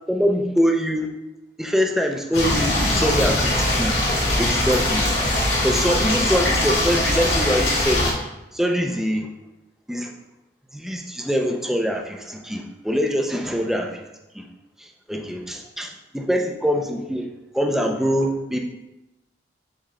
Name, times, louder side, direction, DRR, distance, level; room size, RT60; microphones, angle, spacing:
voice 1, 0.1-1.1 1.6-4.0 4.4-5.1 5.6-8.1 8.5-9.3 9.9-10.1 10.7-14.0 14.3-14.5 14.8-17.3 17.5-18.6, equal, ahead, 1 dB, 0.6 m, -23 dB
sound 1, 2.3-8.1, left 1 dB, 70° left, 2.2 m, -21 dB
7.4 x 3.5 x 3.7 m, 0.97 s
head